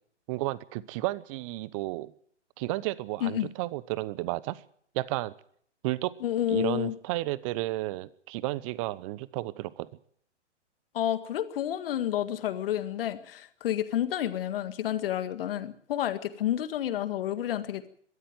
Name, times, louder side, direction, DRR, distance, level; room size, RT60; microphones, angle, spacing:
voice 1, 0.3-2.1 2.6-4.6 4.9-5.3 5.8-6.1 6.5-9.9, right 18 dB, 30° right, 20 dB, 0.8 m, -32 dB
voice 2, 6.2-7.0 10.9-17.8, left 11 dB, 50° left, 10 dB, 2.0 m, -30 dB
22.0 x 13.0 x 9.3 m, 0.63 s
hypercardioid pair, 130°, 36 cm